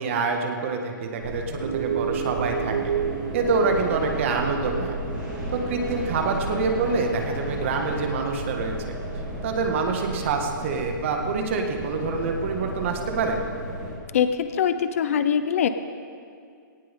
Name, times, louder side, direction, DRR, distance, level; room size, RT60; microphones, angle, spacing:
voice 1, 0.0-2.9 3.3-5.0 5.5-8.7 9.4-13.4, right 4 dB, 35° right, 3 dB, 1.9 m, -26 dB
sound 1, 1.2-13.9, right 1 dB, 10° right, 4.4 m, -34 dB
sound 2, 1.6-9.3, right 8 dB, 55° right, 0.8 m, -33 dB
voice 2, 14.1-15.7, left 8 dB, 40° left, 11 dB, 0.7 m, -23 dB
19.0 x 18.5 x 3.7 m, 2.3 s
hypercardioid pair, 165°, 11 cm